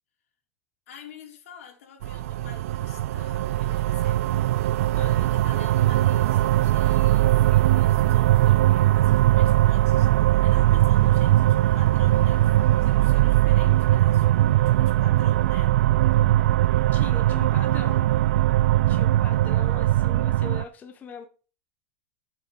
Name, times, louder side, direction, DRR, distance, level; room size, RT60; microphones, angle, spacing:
voice 1, 0.9-4.2 5.1-10.1 10.4-15.8, left 7 dB, 85° left, 4.1 m, -48 dB
sound 1, 2.0-20.6, right 15 dB, 90° right, 0.4 m, -20 dB
voice 2, 16.9-18.1 18.9-21.3, left 7 dB, 20° left, 1.2 m, -40 dB
9.1 x 8.1 x 5.8 m
supercardioid pair, 150°, 7 cm